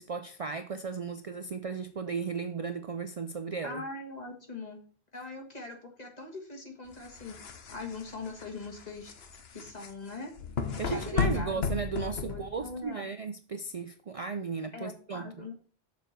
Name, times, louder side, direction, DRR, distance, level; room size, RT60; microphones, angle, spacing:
voice 1, 0.0-3.8 10.8-15.5, right 5 dB, 45° right, 0.5 m, -35 dB
voice 2, 3.6-4.8 5.1-7.4 7.7-9.1 9.5-10.3 10.8-13.1 14.7-15.5, left 3 dB, 40° left, 1.9 m, -41 dB
sound 1, 6.9-12.8, left 5 dB, 80° left, 1.2 m, -34 dB
6.7 x 4.5 x 6.5 m
omnidirectional pair, 1.0 m